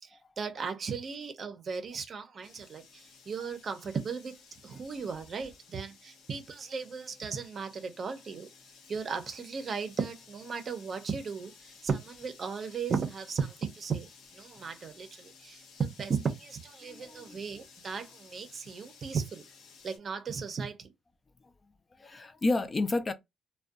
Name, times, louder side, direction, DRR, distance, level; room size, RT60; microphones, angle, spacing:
voice 1, 0.0-8.5 8.9-19.4 19.8-20.9, right 5 dB, 50° right, 0.5 m, -36 dB
sound 1, 2.4-20.0, left 5 dB, 85° left, 0.6 m, -56 dB
voice 2, 16.9-17.4 22.0-23.1, left 2 dB, 30° left, 0.3 m, -30 dB
2.5 x 2.1 x 2.3 m
cardioid pair, 90°, 0 cm